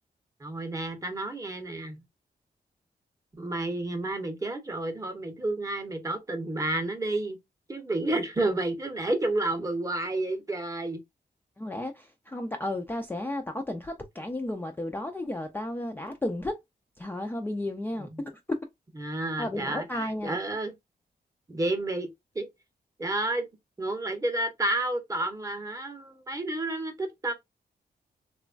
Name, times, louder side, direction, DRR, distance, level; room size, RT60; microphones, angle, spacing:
voice 1, 0.4-2.0 3.4-7.4 7.7-11.0 18.0-18.2 19.0-20.7 21.5-22.1 22.3-22.5 23.0-23.5 23.8-27.3, right 2 dB, 20° right, 0.7 m, -30 dB
voice 2, 11.6-16.6 17.0-18.3 19.4-20.4, left 1 dB, 10° left, 0.3 m, -33 dB
3.0 x 2.2 x 2.4 m
wide cardioid pair, 115°, 17 cm